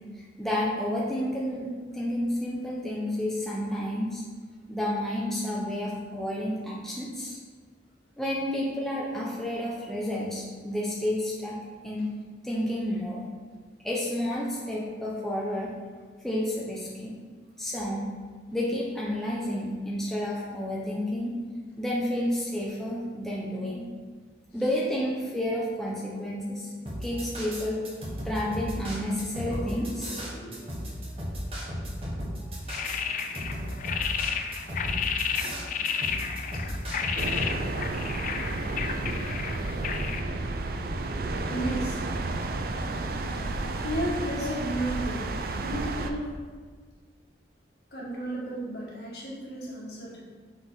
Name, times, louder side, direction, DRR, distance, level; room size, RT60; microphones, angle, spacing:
voice 1, 0.4-4.2 4.7-7.4 8.2-11.5 11.8-12.1 12.4-13.3 13.8-15.7 16.2-17.2 17.6-18.1 18.5-21.4 21.8-23.9 24.5-26.7 27.0-27.8 28.2-30.1, left 1 dB, ahead, -6 dB, 0.8 m, -30 dB
sound 1, 26.9-37.5, equal, 30° right, 1.3 m, -35 dB
voice 2, 29.4-30.8 35.4-35.7 36.1-36.2 36.5-36.6 41.5-42.1 43.7-45.3 45.6-46.3 47.9-50.2, right 1 dB, 60° left, -5 dB, 1.8 m, -34 dB
sound 2, 32.7-40.2, left 7 dB, 45° left, 0.4 m, -32 dB
sound 3, 37.2-46.1, right 2 dB, 55° right, 0.4 m, -31 dB
6.1 x 5.0 x 4.0 m, 1.5 s
head